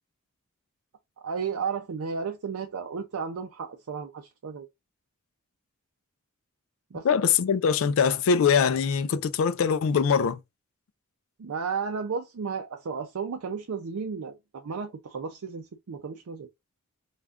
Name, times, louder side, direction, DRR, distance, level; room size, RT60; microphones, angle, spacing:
voice 1, 1.2-4.7 6.9-7.1 11.4-16.5, right 5 dB, 80° right, 0.5 m, -33 dB
voice 2, 7.0-10.4, left 6 dB, 65° left, 0.3 m, -23 dB
3.4 x 2.3 x 2.4 m
head